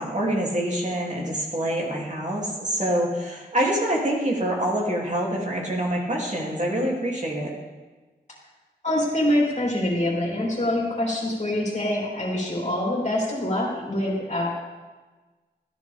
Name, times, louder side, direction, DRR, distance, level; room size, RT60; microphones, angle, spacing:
voice 1, 0.0-7.5, right 1 dB, 45° right, -3 dB, 2.8 m, -26 dB
voice 2, 8.8-14.5, left 1 dB, 40° left, -3 dB, 3.3 m, -25 dB
14.0 x 9.9 x 3.5 m, 1.3 s
wide cardioid pair, 50°, 17 cm